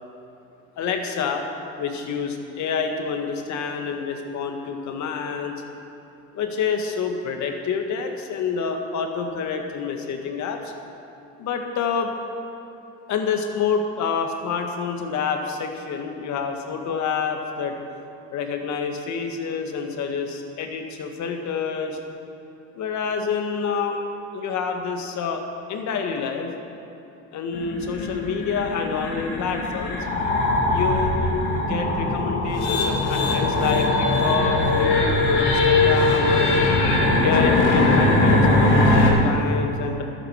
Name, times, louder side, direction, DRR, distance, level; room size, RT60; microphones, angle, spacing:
voice 1, 0.8-1.5 1.8-5.6 6.3-10.7 11.4-12.1 13.1-17.7 18.3-22.0 22.7-24.0 24.3-25.4 25.7-26.5 27.3-30.1 30.7-31.4 31.7-36.5 37.2-40.0, left 5 dB, 65° left, 4 dB, 1.7 m, -27 dB
sound 1, 27.5-39.1, left 2 dB, 85° left, 2.3 m, -20 dB
12.0 x 10.0 x 6.4 m, 3.0 s
supercardioid pair, 75°, 31 cm